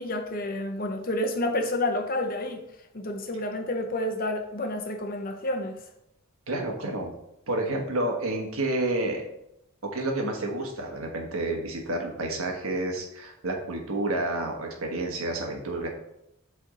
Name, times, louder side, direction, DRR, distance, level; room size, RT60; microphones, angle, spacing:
voice 1, 0.0-2.6 2.9-5.8, left 1 dB, 40° left, 5 dB, 0.8 m, -29 dB
voice 2, 6.5-7.1 7.5-9.3 9.8-15.9, right 2 dB, 80° right, 1 dB, 1.3 m, -29 dB
8.2 x 3.5 x 3.8 m, 0.83 s
head